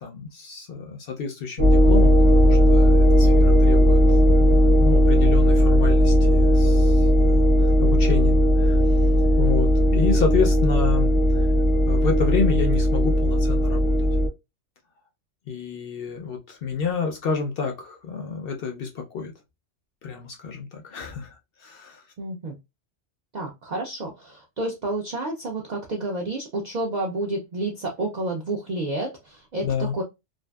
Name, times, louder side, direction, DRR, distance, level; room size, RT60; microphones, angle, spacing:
voice 1, 0.0-8.8 9.4-11.1 11.3-11.5 11.8-13.9 15.5-19.3 20.0-22.0 29.6-29.9, left 5 dB, 60° left, 0.6 m, -29 dB
sound 1, 1.6-14.3, equal, 30° right, 0.8 m, -17 dB
voice 2, 22.2-22.6 23.3-30.0, right 2 dB, 60° right, 0.4 m, -30 dB
2.6 x 2.4 x 2.2 m
omnidirectional pair, 1.3 m